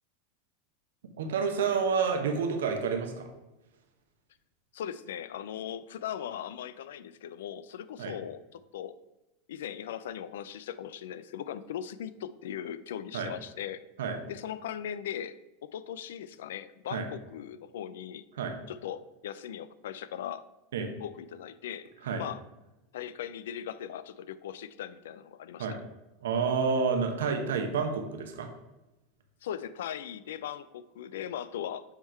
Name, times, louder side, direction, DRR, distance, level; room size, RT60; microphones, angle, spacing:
voice 1, 1.2-3.3 8.0-8.1 13.1-13.3 14.0-14.2 16.9-17.0 18.4-18.6 20.7-20.9 22.0-22.2 25.6-25.8 26.2-28.5, right 5 dB, 80° right, 5 dB, 1.0 m, -29 dB
voice 2, 4.7-8.9 9.5-13.8 14.3-15.3 15.6-18.2 18.7-20.4 21.0-21.9 22.2-22.4 22.9-25.7 29.4-31.8, left 9 dB, 75° left, 15 dB, 0.3 m, -39 dB
7.0 x 3.7 x 4.4 m, 1.0 s
hypercardioid pair, 95°, 0 cm